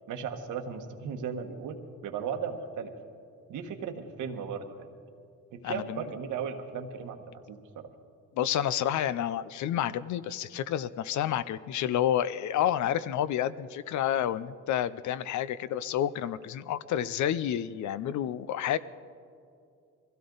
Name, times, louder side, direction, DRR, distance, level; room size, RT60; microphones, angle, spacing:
voice 1, 0.1-1.8 2.0-2.9 3.5-5.0 5.5-7.6, right 6 dB, 80° right, 5 dB, 1.5 m, -36 dB
voice 2, 5.6-6.1 8.3-18.8, left 10 dB, 70° left, 16 dB, 0.6 m, -29 dB
22.5 x 16.0 x 4.0 m, 2.4 s
cardioid pair, 90°, 30 cm